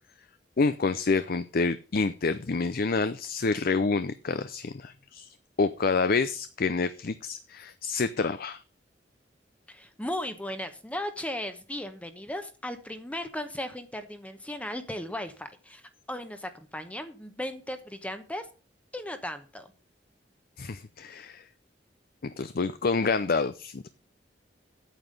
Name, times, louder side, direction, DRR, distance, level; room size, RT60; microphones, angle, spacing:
voice 1, 0.6-5.2 5.6-8.6 20.6-21.4 22.2-23.9, left 4 dB, 55° left, 12 dB, 0.6 m, -28 dB
voice 2, 9.7-15.8 16.1-18.5 18.9-19.7, left 1 dB, 10° left, 8 dB, 1.0 m, -36 dB
9.0 x 8.2 x 6.6 m, 0.35 s
head